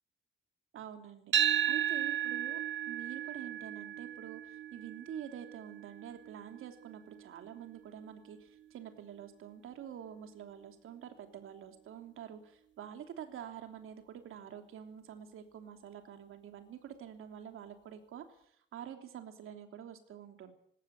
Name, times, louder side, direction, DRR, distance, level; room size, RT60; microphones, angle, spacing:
voice 1, 0.7-2.6 2.9-18.4 18.7-20.5, right 9 dB, 80° right, 6 dB, 3.3 m, -47 dB
sound 1, 1.3-9.5, right 11 dB, 65° right, 2.0 m, -36 dB
20.5 x 17.0 x 9.5 m, 0.67 s
cardioid pair, 125°, 21 cm